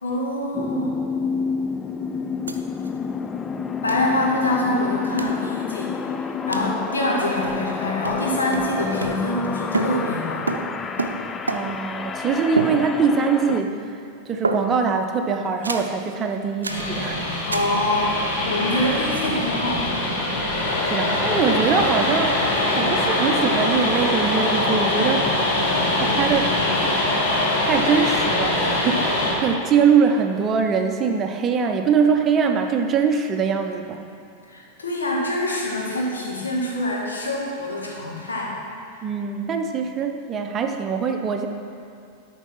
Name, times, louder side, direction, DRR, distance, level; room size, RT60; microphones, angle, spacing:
voice 1, 0.0-1.1 3.8-6.0 6.5-10.4 17.5-19.9 34.5-38.6, left 1 dB, 70° left, -3 dB, 2.2 m, -25 dB
sound 1, 0.5-13.6, left 5 dB, 20° left, 0.4 m, -29 dB
sound 2, 2.5-2.6 2.8-2.9 3.9-4.1 5.2-5.4 6.5-6.8 7.4-7.8 8.0-9.5 9.7-11.9 12.6-13.2 13.5-13.9 14.4-15.0 15.6-16.0 16.6-16.9 17.5-17.8, right 3 dB, 75° right, 0.6 m, -29 dB
voice 2, 11.5-13.9 14.3-17.2 20.8-25.3 26.0-26.6 27.6-34.1 39.0-41.5, right 6 dB, 25° right, 5 dB, 0.7 m, -22 dB
sound 3, 16.7-29.3, left 1 dB, 50° left, 2.2 m, -22 dB
12.5 x 5.4 x 5.8 m, 2.5 s
figure-of-eight pair, 90°, 0 cm